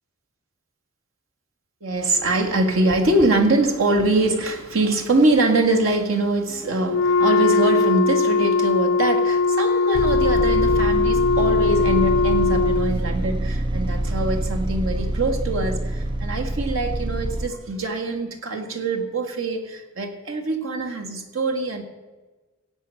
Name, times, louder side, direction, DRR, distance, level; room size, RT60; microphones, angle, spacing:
voice 1, 1.8-21.8, right 2 dB, 90° right, 4 dB, 1.8 m, -23 dB
Wind instrument woodwind instrument, 6.8-13.0, left 4 dB, 70° left, 0.5 m, -20 dB
sound 1, 9.9-17.5, right 1 dB, 25° right, 0.5 m, -26 dB
16.0 x 8.4 x 6.4 m, 1.3 s
head